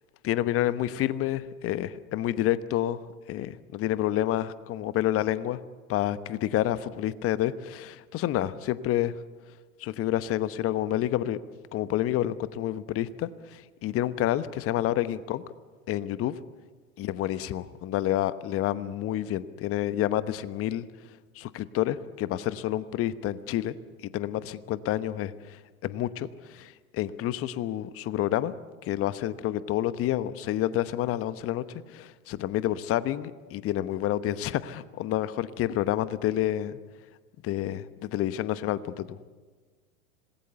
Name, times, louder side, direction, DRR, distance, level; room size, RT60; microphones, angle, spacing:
voice 1, 0.2-3.0 3.3-5.6 5.9-9.1 9.8-11.4 11.7-15.4 15.9-16.3 17.0-20.8 21.4-23.8 24.0-28.5 28.8-36.8 37.4-39.3, left 13 dB, 30° left, 14 dB, 1.0 m, -29 dB
26.0 x 20.0 x 7.0 m, 1.4 s
hypercardioid pair, 100°, 44 cm